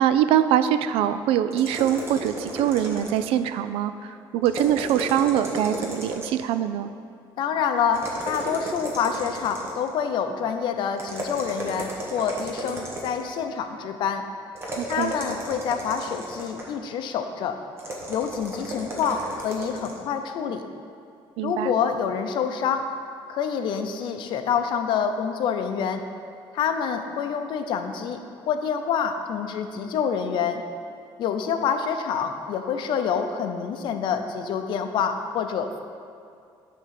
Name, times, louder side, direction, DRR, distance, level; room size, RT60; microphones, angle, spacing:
voice 1, 0.0-6.9 14.8-15.1 21.4-21.7, right 10 dB, 85° right, 11 dB, 0.4 m, -23 dB
sound 1, 1.5-3.4 4.4-6.5 7.9-9.9 11.0-13.3 14.5-16.8 17.8-20.0, right 1 dB, 30° right, 1.2 m, -34 dB
voice 2, 7.4-14.2 14.9-17.6 18.1-20.6 21.4-22.9 23.3-26.0 26.5-28.2 28.5-30.6 31.2-35.8, left 7 dB, 60° left, 7 dB, 0.6 m, -27 dB
10.0 x 3.7 x 5.8 m, 2.3 s
cardioid pair, 165°, 9 cm